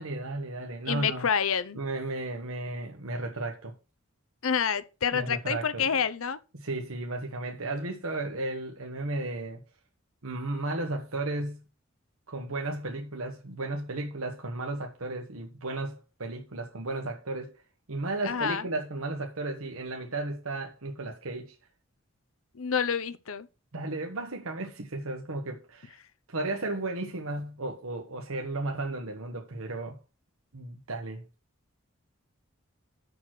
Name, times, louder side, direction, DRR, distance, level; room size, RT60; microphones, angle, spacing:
voice 1, 0.0-1.3 1.7-3.7 5.1-5.9 6.5-9.6 10.2-11.6 12.3-17.6 17.9-21.6 23.7-26.0 26.3-30.0 30.5-31.2, right 2 dB, 80° right, 1.3 m, -34 dB
voice 2, 0.9-1.8 4.4-6.4 18.2-18.6 22.5-23.5, left 7 dB, 75° left, 0.7 m, -28 dB
7.1 x 6.4 x 5.9 m
head